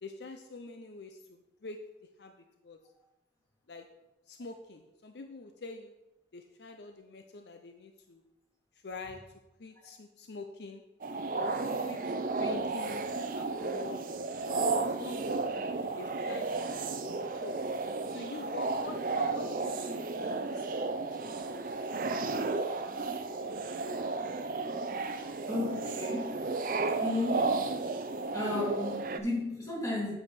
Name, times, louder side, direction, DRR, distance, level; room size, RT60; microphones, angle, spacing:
voice 1, 0.0-1.8 2.2-2.4 2.6-2.8 3.7-3.9 4.3-5.9 6.3-8.2 8.8-9.2 9.6-10.8 11.3-13.1 13.3-14.0 14.4-17.6 18.1-21.3 21.8-21.9, left 3 dB, 70° left, 5 dB, 0.6 m, -46 dB
sound 1, 11.0-29.2, right 3 dB, 50° right, 0.5 m, -33 dB
voice 2, 25.5-26.4 27.0-27.5 28.3-30.1, left 2 dB, 20° left, -5 dB, 2.6 m, -34 dB
8.1 x 4.8 x 5.3 m, 0.91 s
head